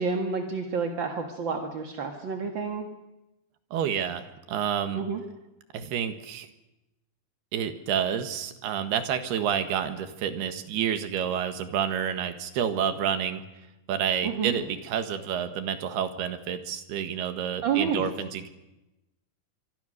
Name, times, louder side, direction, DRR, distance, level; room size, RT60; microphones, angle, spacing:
voice 1, 0.0-2.9 4.9-5.2 14.2-14.5 17.6-18.0, right 5 dB, 45° right, 3 dB, 1.7 m, -29 dB
voice 2, 3.7-5.0 5.7-6.5 7.5-13.4 13.9-18.5, right 8 dB, 80° right, 9 dB, 3.6 m, -29 dB
25.0 x 24.5 x 6.6 m, 0.97 s
omnidirectional pair, 4.5 m